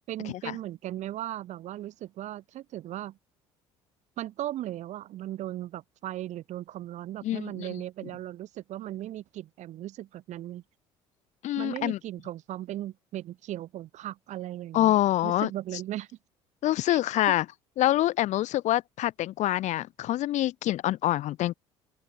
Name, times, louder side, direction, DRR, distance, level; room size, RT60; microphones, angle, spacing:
voice 1, 0.1-3.2 4.2-10.6 11.6-15.0 15.2-16.1 16.9-17.0 17.3-17.4, right 13 dB, 55° right, 1.0 m, -37 dB
voice 2, 7.2-7.7 11.4-12.0 14.7-15.5 16.6-17.4 17.8-21.5, left 14 dB, 55° left, 0.8 m, -26 dB
open air
hypercardioid pair, 65°, 14 cm